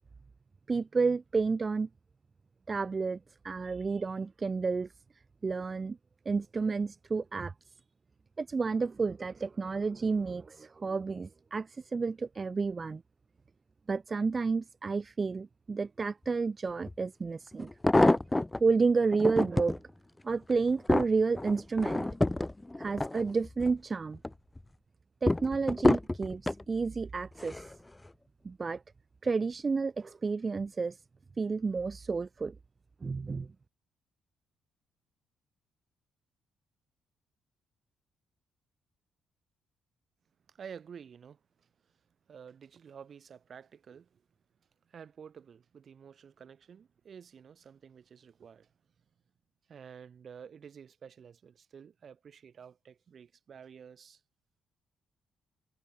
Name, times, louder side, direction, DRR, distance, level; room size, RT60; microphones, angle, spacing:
voice 1, 0.7-1.9 2.7-3.2 3.4-4.9 5.4-6.0 6.3-7.5 8.4-13.0 13.9-17.7 18.6-19.7 20.2-22.1 22.8-24.2 25.2-27.7 28.4-28.8 29.2-31.0 31.4-32.6 33.0-33.5, right 4 dB, 30° right, 0.3 m, -30 dB
sound 1, 16.9-17.0 17.6-18.6 19.1-19.8 20.3-23.8 24.1-24.6 25.3-26.6 27.4-27.8 28.1-28.2, left 2 dB, 15° left, 0.6 m, -28 dB
voice 2, 40.5-42.0 42.3-44.2 44.8-48.7 49.7-54.2, right 7 dB, 50° right, 2.1 m, -51 dB
cardioid pair, 90°, 0 cm